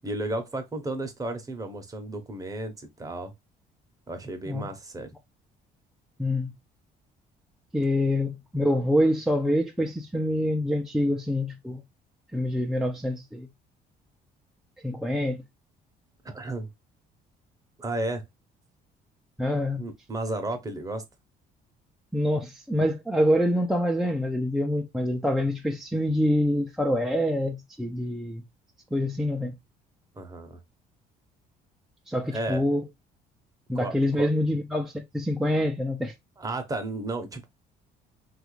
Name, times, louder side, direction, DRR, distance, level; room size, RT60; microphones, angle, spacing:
voice 1, 0.0-3.3 4.1-5.1 16.2-16.7 17.8-18.2 19.8-21.0 30.2-30.6 32.3-32.6 33.7-34.3 36.4-37.5, right 2 dB, 20° right, 0.8 m, -33 dB
voice 2, 6.2-6.5 7.7-11.8 12.3-13.5 14.8-15.4 19.4-19.9 22.1-28.4 28.9-29.6 32.1-32.9 33.7-36.1, left 1 dB, 5° right, 0.4 m, -26 dB
3.0 x 2.4 x 3.1 m
cardioid pair, 110°, 17 cm